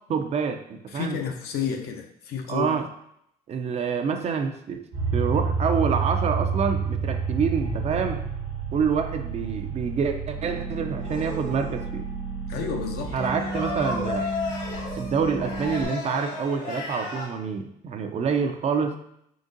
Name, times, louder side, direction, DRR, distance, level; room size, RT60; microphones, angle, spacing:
voice 1, 0.1-1.2 2.5-2.9 3.5-4.8 5.1-8.2 8.7-12.1 13.1-14.2 14.9-19.0, right 6 dB, 40° right, 6 dB, 0.4 m, -27 dB
voice 2, 0.9-2.8 12.5-13.3, left 6 dB, 70° left, 4 dB, 0.6 m, -31 dB
sound 1, 4.9-15.8, right 5 dB, 75° right, 0.9 m, -30 dB
sound 2, 11.0-11.8 13.0-17.3, left 2 dB, 85° left, 1.1 m, -33 dB
3.9 x 3.4 x 2.6 m, 0.74 s
cardioid pair, 110°, 17 cm